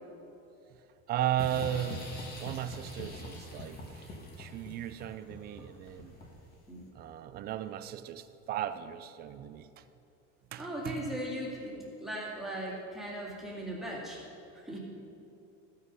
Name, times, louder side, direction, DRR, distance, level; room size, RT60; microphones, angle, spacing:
voice 1, 1.1-2.1 2.4-4.1 4.4-6.1 7.0-9.8 10.5-11.2, right 11 dB, 30° right, 12 dB, 0.4 m, -36 dB
sound 1, 1.4-6.5, left 1 dB, 30° left, 1.8 m, -44 dB
voice 2, 10.6-14.2 14.5-14.8, equal, ahead, -5 dB, 2.2 m, -38 dB
14.5 x 8.8 x 5.4 m, 2.8 s
cardioid pair, 170°, 32 cm